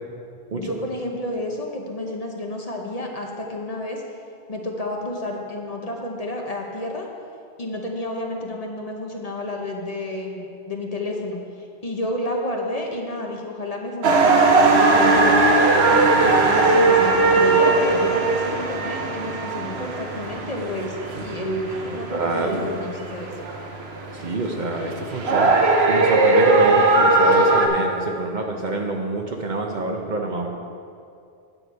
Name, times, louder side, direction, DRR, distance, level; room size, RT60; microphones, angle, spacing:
voice 1, 0.5-4.0 4.5-7.1 7.6-11.4 11.8-15.4 15.9-23.3, left 1 dB, 40° left, 1 dB, 0.9 m, -30 dB
sound 1, 14.0-27.7, right 3 dB, 85° right, 1.2 m, -19 dB
voice 2, 21.9-22.7 24.1-25.6 25.9-30.5, right 2 dB, 50° right, 2 dB, 0.9 m, -27 dB
9.1 x 7.8 x 4.6 m, 2.5 s
omnidirectional pair, 1.0 m